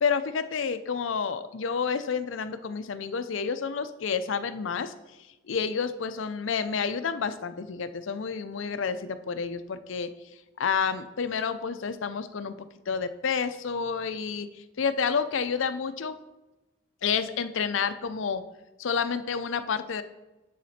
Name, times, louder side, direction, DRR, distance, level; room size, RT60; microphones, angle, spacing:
voice 1, 0.0-4.9 5.5-10.1 10.6-14.5 14.8-16.2 17.0-18.4 18.8-20.0, left 6 dB, 80° left, 11 dB, 0.5 m, -29 dB
9.3 x 4.2 x 4.2 m, 1.0 s
head